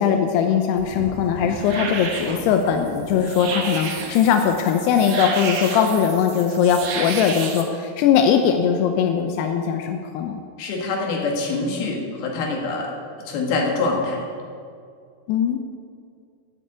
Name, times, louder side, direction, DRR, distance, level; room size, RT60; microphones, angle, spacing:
voice 1, 0.0-10.4 15.3-15.6, left 7 dB, 90° left, 5 dB, 2.8 m, -20 dB
sound 1, 0.8-7.6, right 5 dB, 70° right, 1.5 m, -32 dB
voice 2, 10.6-12.9 13.3-14.2, left 3 dB, 70° left, 0 dB, 3.5 m, -25 dB
9.8 x 8.7 x 8.7 m, 2.2 s
omnidirectional pair, 4.7 m